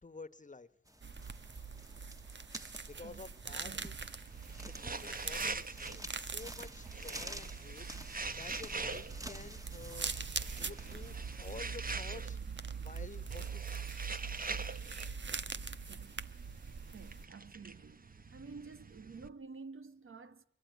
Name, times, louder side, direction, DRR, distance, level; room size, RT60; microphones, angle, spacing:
voice 1, 0.0-0.7 2.8-3.9 4.7-10.1 10.6-12.4 12.8-13.6, left 3 dB, 40° left, 1.3 m, -51 dB
sound 1, 0.9-11.6, right 1 dB, 15° right, 1.6 m, -51 dB
sound 2, 1.0-17.3, right 5 dB, 65° right, 1.2 m, -43 dB
sound 3, 3.5-19.3, right 3 dB, 45° right, 1.2 m, -45 dB
voice 2, 16.9-18.0 18.3-20.5, right 4 dB, 85° right, 1.4 m, -50 dB
24.0 x 24.0 x 9.4 m
wide cardioid pair, 75°, 21 cm